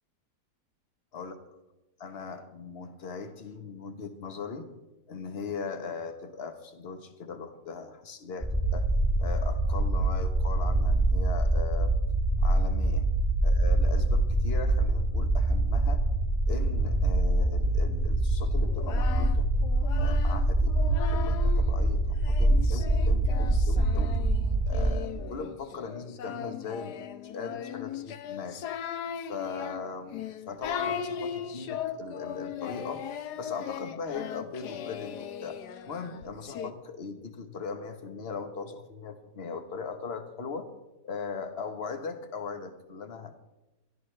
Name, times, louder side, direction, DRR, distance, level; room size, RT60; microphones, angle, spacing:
voice 1, 2.0-4.7 5.1-8.9 9.2-12.0 12.4-13.1 13.4-16.0 16.5-19.5 20.0-20.7 21.1-24.2 24.7-27.0 27.2-28.6 29.2-33.0 33.4-35.6 35.8-40.7 41.0-43.3, left 5 dB, 40° left, 8 dB, 1.4 m, -39 dB
sound 1, 8.4-24.9, right 1 dB, 15° left, 2.6 m, -25 dB
Singing, 18.6-21.7 22.2-36.7, left 8 dB, 75° left, 1.4 m, -38 dB
22.5 x 13.5 x 3.4 m, 1.0 s
omnidirectional pair, 1.8 m